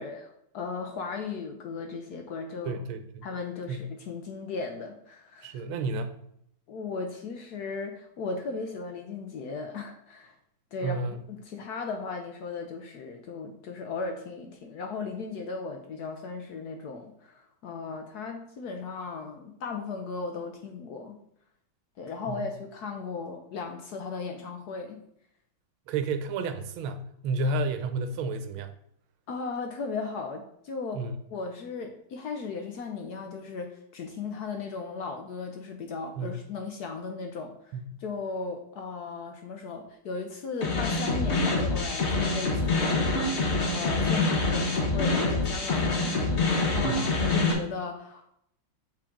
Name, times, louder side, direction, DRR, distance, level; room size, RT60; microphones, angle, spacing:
voice 1, 0.0-2.8 3.2-5.6 6.7-10.3 10.7-11.0 11.3-21.2 22.0-25.0 29.3-31.0 31.3-48.3, left 4 dB, 70° left, 1.0 m, -37 dB
voice 2, 2.6-3.3 3.7-3.8 5.4-6.1 10.8-11.2 22.3-22.5 25.9-28.7 30.9-31.1 36.2-36.4 37.7-38.0 46.8-47.1, right 3 dB, 90° right, 1.5 m, -31 dB
sound 1, 40.6-47.5, left 3 dB, 40° left, 1.2 m, -26 dB
7.5 x 3.8 x 3.6 m
omnidirectional pair, 2.2 m